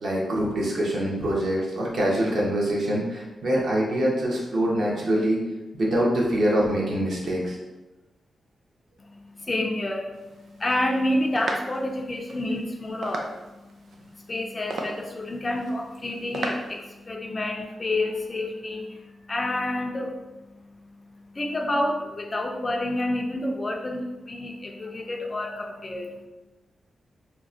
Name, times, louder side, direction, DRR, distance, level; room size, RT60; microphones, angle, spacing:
voice 1, 0.0-5.4 5.7-7.6, right 1 dB, 65° right, -4 dB, 0.9 m, -24 dB
voice 2, 9.0-26.3, left 1 dB, 25° left, 1 dB, 0.3 m, -29 dB
sound 1, 10.1-17.1, right 2 dB, 90° right, 0.4 m, -38 dB
2.9 x 2.1 x 3.7 m, 1.1 s
wide cardioid pair, 150°, 0 cm